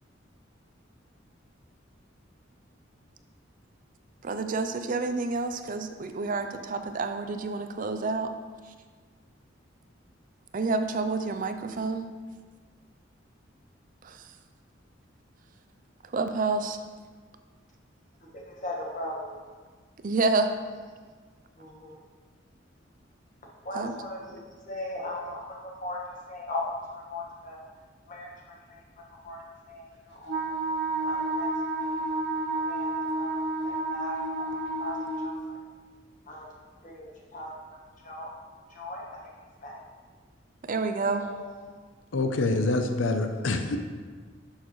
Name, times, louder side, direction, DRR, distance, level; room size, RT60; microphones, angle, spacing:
voice 1, 4.2-8.3 10.5-12.1 14.0-14.2 16.1-16.8 20.0-20.5 23.8-23.9 40.7-41.2, right 3 dB, 45° right, 8 dB, 0.5 m, -28 dB
voice 2, 18.3-19.4 21.6-22.0 23.6-27.6 28.1-30.5 31.0-31.9 32.6-35.6 36.3-37.8 38.0-38.3 38.7-39.2 39.6-39.8 41.2-41.7, left 1 dB, 40° left, -2 dB, 1.6 m, -39 dB
Wind instrument woodwind instrument, 30.3-35.4, right 2 dB, 70° right, 1.2 m, -30 dB
voice 3, 42.1-43.8, left 2 dB, 80° left, 6 dB, 0.6 m, -26 dB
11.0 x 6.4 x 3.1 m, 1.5 s
head